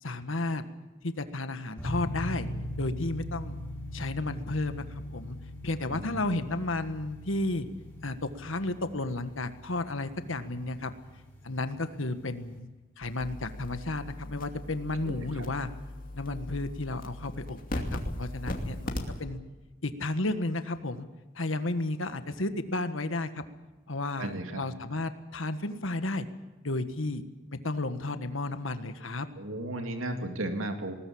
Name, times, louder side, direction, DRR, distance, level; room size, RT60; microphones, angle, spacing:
voice 1, 0.0-0.6 1.0-2.5 2.8-3.6 3.9-5.4 5.6-7.7 8.0-10.9 11.4-12.7 13.0-15.7 16.1-19.4 19.8-21.1 21.3-23.4 23.9-26.3 26.6-27.2 27.5-29.3, left 2 dB, 80° left, 9 dB, 1.6 m, -33 dB
sound 1, 1.8-12.6, left 1 dB, 5° left, 5.2 m, -41 dB
sound 2, 13.0-19.2, left 1 dB, 45° left, 2.6 m, -38 dB
voice 2, 15.0-15.5 24.2-24.6 29.4-30.9, right 1 dB, 90° right, 5 dB, 2.4 m, -35 dB
20.5 x 19.0 x 8.7 m, 1.2 s
head